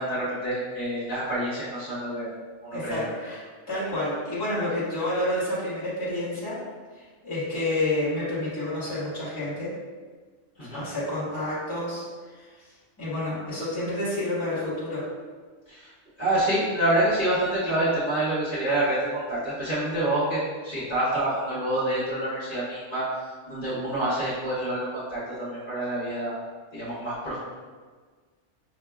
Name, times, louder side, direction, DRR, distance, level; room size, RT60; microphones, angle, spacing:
voice 1, 0.0-2.3 2.8-3.1 10.6-10.8 15.7-15.9 16.2-23.0 23.5-26.4 26.7-27.4, right 1 dB, 35° left, -13 dB, 1.6 m, -27 dB
voice 2, 2.7-6.6 6.9-9.7 10.6-12.0 12.3-12.7 13.0-15.0, left 1 dB, 20° left, -12 dB, 1.6 m, -29 dB
6.1 x 2.7 x 2.3 m, 1.5 s
omnidirectional pair, 1.2 m